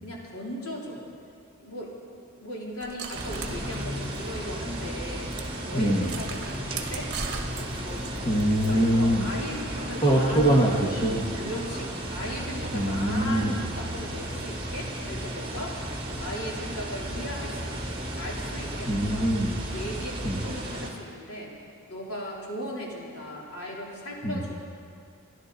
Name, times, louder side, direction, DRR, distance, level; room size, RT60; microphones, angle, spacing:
voice 1, 0.0-1.0 1.6-1.9 2.4-5.4 5.7-10.7 11.3-15.8 16.2-19.3 19.7-21.5 21.9-24.5, equal, 80° left, -4 dB, 3.5 m, -37 dB
sound 1, 2.8-4.6 4.9-5.0 5.3-5.5 6.0-8.7, right 5 dB, 50° right, 1.3 m, -38 dB
sound 2, 3.1-20.9, right 1 dB, 25° right, 2.2 m, -34 dB
voice 2, 5.7-6.1 8.3-9.3 10.0-11.2 12.7-13.5 18.9-19.5 20.2-20.4 24.2-24.5, right 1 dB, 20° left, -2 dB, 1.5 m, -23 dB
29.5 x 11.5 x 4.1 m, 2.4 s
head